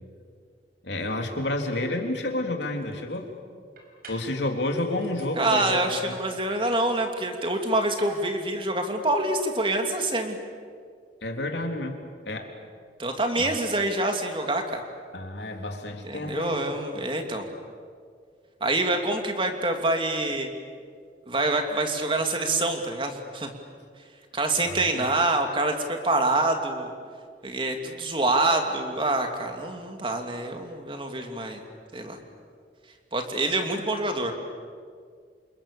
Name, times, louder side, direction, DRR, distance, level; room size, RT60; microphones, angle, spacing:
voice 1, 0.8-3.3 4.1-6.1 11.2-12.0 12.2-12.5 13.4-13.5 15.1-16.6 16.9-17.0 24.6-25.1, left 1 dB, 80° left, 3 dB, 3.4 m, -30 dB
sound 1, 2.1-2.2 2.6-3.2 3.8-4.3 4.7-5.3 6.0-8.2, right 2 dB, 55° right, 6.0 m, -49 dB
voice 2, 5.4-10.4 13.0-14.8 16.0-17.5 18.6-20.5 21.3-23.5 24.3-26.9 27.4-31.6 31.9-32.2 33.1-34.3, right 2 dB, 30° right, 4 dB, 2.8 m, -26 dB
29.0 x 27.5 x 7.1 m, 2.1 s
head